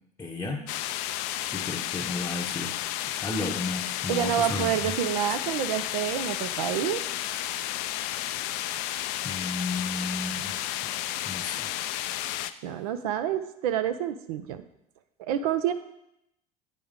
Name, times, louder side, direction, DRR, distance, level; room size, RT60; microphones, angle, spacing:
voice 1, 0.2-0.7 1.5-2.8 3.2-4.9 9.2-10.6 11.3-11.7, left 2 dB, 15° left, -1 dB, 0.8 m, -33 dB
sound 1, 0.7-12.5, left 13 dB, 55° left, 0.4 m, -32 dB
voice 2, 4.1-7.0 12.6-14.6 15.2-15.7, right 10 dB, 65° right, 10 dB, 0.5 m, -28 dB
8.7 x 5.1 x 3.6 m, 0.80 s
hypercardioid pair, 75°, 20 cm